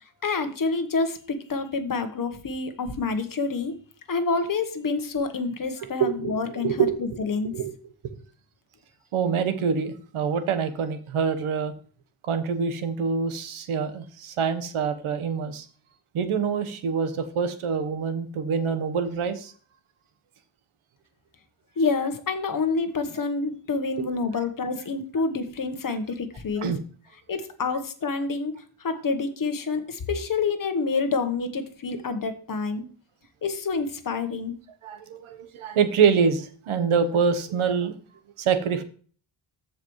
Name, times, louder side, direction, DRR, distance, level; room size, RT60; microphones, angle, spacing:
voice 1, 0.2-3.7 4.1-6.9 7.2-7.5 21.8-26.7 27.3-28.5 28.8-32.8 33.4-34.5, left 4 dB, 40° left, 8 dB, 1.2 m, -27 dB
voice 2, 6.0-7.2 7.5-7.7 9.1-11.7 12.3-15.6 16.1-19.5 26.6-26.8 34.8-37.9 38.4-38.8, right 6 dB, 90° right, 10 dB, 1.2 m, -25 dB
14.0 x 5.1 x 3.1 m, 0.42 s
wide cardioid pair, 135°, 48 cm